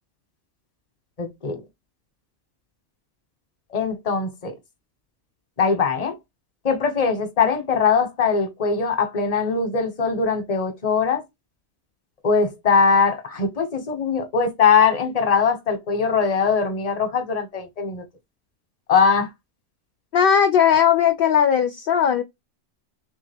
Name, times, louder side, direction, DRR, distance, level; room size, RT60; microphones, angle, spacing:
voice 1, 1.2-1.6 3.7-4.5 5.6-6.1 6.6-11.2 12.2-18.0 18.9-19.3, left 5 dB, 35° left, 0.9 m, -21 dB
voice 2, 20.1-22.2, left 8 dB, 60° left, 0.7 m, -18 dB
3.4 x 3.1 x 3.4 m
omnidirectional pair, 1.2 m